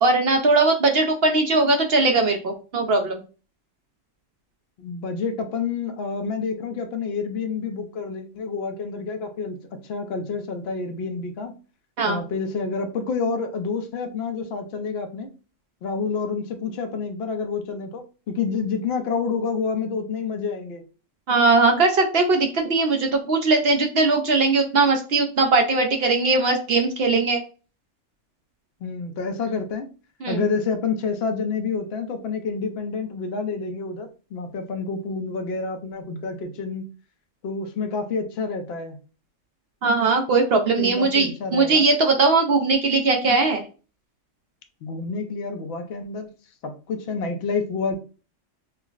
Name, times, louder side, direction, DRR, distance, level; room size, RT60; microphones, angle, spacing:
voice 1, 0.0-3.2 12.0-12.2 21.3-27.4 30.2-30.4 39.8-43.6, right 3 dB, 60° right, 3 dB, 0.7 m, -20 dB
voice 2, 4.8-9.6 9.8-11.5 12.1-15.3 15.8-20.8 28.8-29.9 30.3-36.8 37.4-39.0 40.8-41.9 44.8-46.3 46.6-48.0, left 4 dB, 60° left, 5 dB, 0.8 m, -28 dB
5.5 x 2.0 x 2.4 m, 0.35 s
omnidirectional pair, 1.4 m